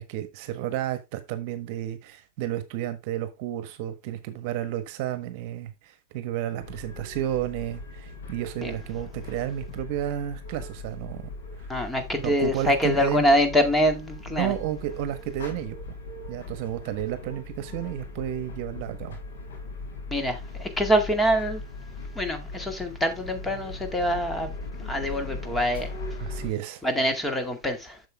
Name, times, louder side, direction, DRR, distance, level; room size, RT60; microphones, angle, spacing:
voice 1, 0.0-11.3 11.6-11.7 12.2-13.2 14.3-15.8 16.3-19.2 26.2-26.8, right 12 dB, 55° right, 1.3 m, -32 dB
sound 1, 6.6-26.5, left 3 dB, 85° left, 5.3 m, -39 dB
voice 2, 11.7-14.5 20.1-21.6 22.1-24.5 24.8-25.9 26.8-28.0, equal, 10° left, 2.0 m, -25 dB
8.0 x 6.7 x 3.4 m
supercardioid pair, 135°, 0 cm